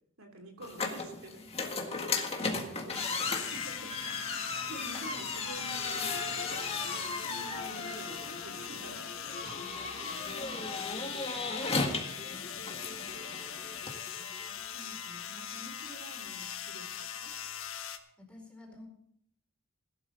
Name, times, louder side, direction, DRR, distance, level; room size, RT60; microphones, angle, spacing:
voice 1, 0.2-1.5 1.9-2.1 2.8-3.0 3.3-4.0 4.4-9.1 14.1-17.3 18.7-18.9, right 1 dB, 75° right, 3 dB, 3.1 m, -49 dB
sound 1, 0.6-14.0, left 3 dB, 30° left, 1.8 m, -36 dB
voice 2, 2.3-3.6 9.5-13.5 13.8-14.1 18.2-18.9, left 2 dB, 5° left, -1 dB, 4.4 m, -54 dB
sound 2, 2.9-18.0, left 8 dB, 70° left, 1.3 m, -41 dB
Guitar, 5.9-15.3, left 3 dB, 45° left, 1.4 m, -49 dB
17.5 x 12.0 x 4.0 m, 0.71 s
head